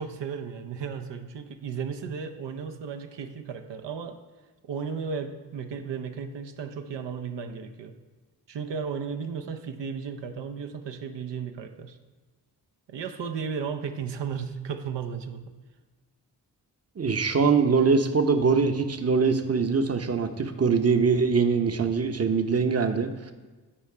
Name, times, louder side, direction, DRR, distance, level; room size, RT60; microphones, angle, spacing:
voice 1, 0.0-4.2 4.6-8.0 8.5-12.0 12.9-15.4, right 6 dB, 75° right, 7 dB, 0.7 m, -34 dB
voice 2, 17.0-23.3, right 5 dB, 35° right, 7 dB, 0.8 m, -23 dB
8.8 x 4.4 x 4.9 m, 1.3 s
cardioid pair, 45°, 43 cm